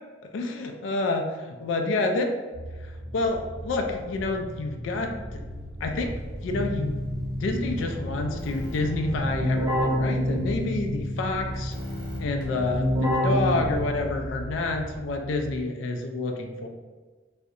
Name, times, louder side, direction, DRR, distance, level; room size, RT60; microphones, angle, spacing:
voice 1, 0.3-2.3 3.1-5.4 5.8-6.1 6.4-7.0 7.4-11.7 12.2-16.7, left 2 dB, 85° left, 4 dB, 0.3 m, -28 dB
sound 1, 2.5-15.6, equal, 60° right, 0.4 m, -39 dB
Keyboard (musical), 6.0-14.3, equal, 20° right, 0.8 m, -29 dB
2.7 x 2.0 x 2.4 m, 1.4 s
head